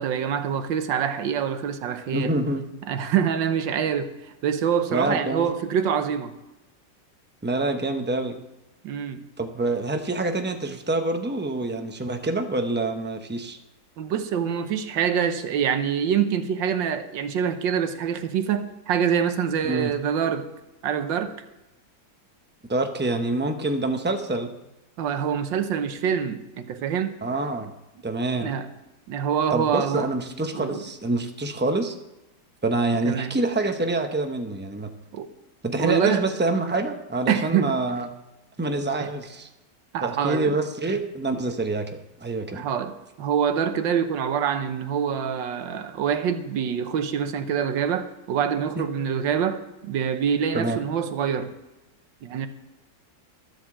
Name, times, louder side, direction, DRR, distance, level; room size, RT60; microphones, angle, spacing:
voice 1, 0.0-2.3 2.9-4.1 4.4-6.3 8.8-9.2 14.0-20.5 20.8-21.3 25.0-27.1 28.4-28.7 29.1-30.1 30.5-30.8 33.0-33.4 35.1-35.3 35.8-36.3 37.3-37.8 39.0-39.1 39.9-40.6 41.3-41.4 42.5-42.9 43.2-51.5 52.2-52.5, right 8 dB, 85° right, 1.6 m, -25 dB
voice 2, 2.1-2.6 4.9-5.5 7.4-8.4 9.4-13.6 19.6-19.9 22.7-24.5 27.2-27.7 28.0-28.5 29.5-31.9 32.6-34.9 35.6-38.1 38.6-39.5 40.0-41.9 42.2-42.6 50.5-50.8, right 2 dB, 15° right, 0.4 m, -26 dB
13.0 x 7.9 x 7.4 m
omnidirectional pair, 2.0 m